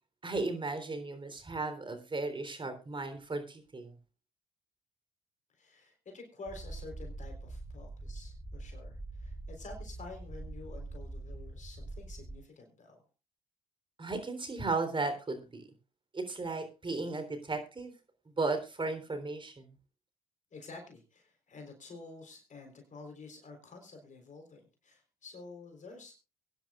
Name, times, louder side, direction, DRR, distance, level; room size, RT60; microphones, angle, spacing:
voice 1, 0.2-4.0 14.0-15.7 16.1-17.9 18.3-19.7, right 3 dB, 30° right, 8 dB, 3.6 m, -35 dB
voice 2, 5.6-13.0 20.5-26.1, left 3 dB, 45° left, 4 dB, 4.0 m, -49 dB
sound 1, 6.5-12.4, right 2 dB, 10° right, 4.6 m, -44 dB
23.0 x 10.5 x 2.4 m, 0.29 s
hypercardioid pair, 55°, 17 cm